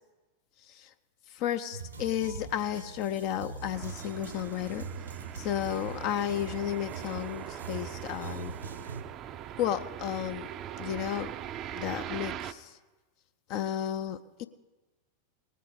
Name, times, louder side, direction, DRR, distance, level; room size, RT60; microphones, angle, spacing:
voice 1, 1.3-4.9 5.4-8.5 9.6-10.5 10.8-11.3 11.7-12.7 13.5-14.4, left 10 dB, 45° left, 11 dB, 0.5 m, -33 dB
sound 1, 1.7-9.0, right 5 dB, 75° right, 0.9 m, -42 dB
sound 2, 3.7-12.5, right 10 dB, 35° right, 0.5 m, -41 dB
19.0 x 7.7 x 4.9 m, 1.2 s
figure-of-eight pair, 90°, 0 cm